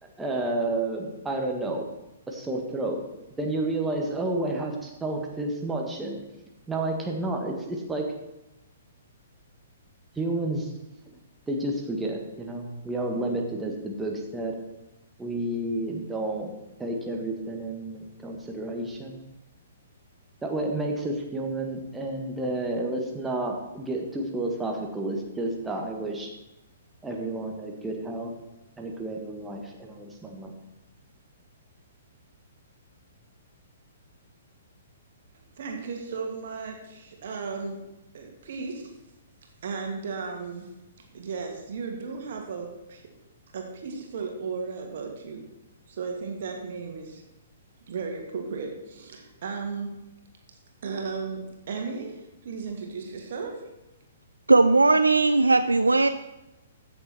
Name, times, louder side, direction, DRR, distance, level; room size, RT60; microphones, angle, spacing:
voice 1, 0.0-1.8 2.3-3.0 3.3-6.2 6.7-8.1 10.1-10.7 11.5-14.6 15.2-19.2 20.4-26.3 27.0-28.3 28.8-30.5, right 2 dB, 10° right, 1 dB, 1.5 m, -31 dB
voice 2, 35.6-37.8 38.1-38.9 39.6-40.7 41.1-43.0 43.5-45.4 45.9-47.2 47.9-49.9 50.8-53.7, right 4 dB, 50° right, 2 dB, 2.4 m, -35 dB
voice 3, 54.5-56.1, right 3 dB, 80° right, 10 dB, 0.4 m, -18 dB
15.0 x 6.9 x 4.4 m, 0.95 s
figure-of-eight pair, 120°, 0 cm